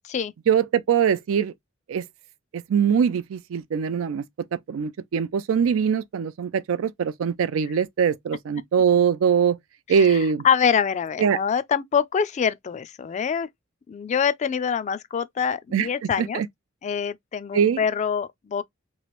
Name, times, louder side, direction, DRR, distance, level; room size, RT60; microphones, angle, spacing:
voice 1, 0.5-1.5 1.9-2.0 2.5-4.2 4.7-9.6 9.9-10.4 11.2-11.4 15.7-15.9 16.2-16.5 17.5-17.8, right 7 dB, 85° right, 0.4 m, -22 dB
voice 2, 9.9-10.2 10.4-13.5 13.9-16.4 16.8-18.6, left 7 dB, 35° left, 0.3 m, -25 dB
3.1 x 2.4 x 2.9 m
head